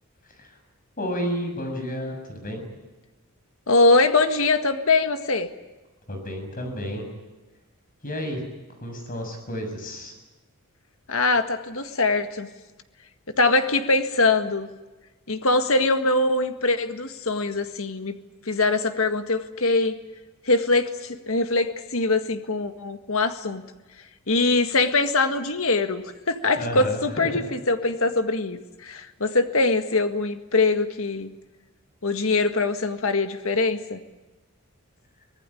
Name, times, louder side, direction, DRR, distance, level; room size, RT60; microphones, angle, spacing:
voice 1, 1.0-2.6 6.1-7.0 8.0-8.4 8.8-10.1 26.6-27.4, equal, 40° left, 5 dB, 6.7 m, -31 dB
voice 2, 3.7-5.5 11.1-12.5 13.4-14.7 15.3-18.2 18.5-19.9 20.5-23.6 24.3-31.3 32.0-34.0, left 3 dB, 65° left, 8 dB, 1.8 m, -23 dB
24.5 x 19.0 x 9.9 m, 1.2 s
head